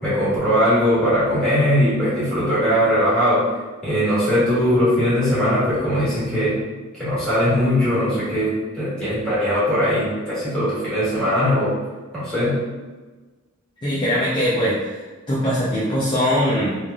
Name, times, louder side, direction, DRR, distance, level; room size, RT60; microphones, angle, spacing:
voice 1, 0.0-3.5 3.8-6.6 6.9-8.5 8.7-11.7 12.1-12.5, equal, 5° left, -13 dB, 1.5 m, -20 dB
voice 2, 13.8-15.0 15.3-16.8, equal, 25° left, -7 dB, 0.4 m, -21 dB
3.2 x 2.3 x 2.3 m, 1.3 s
head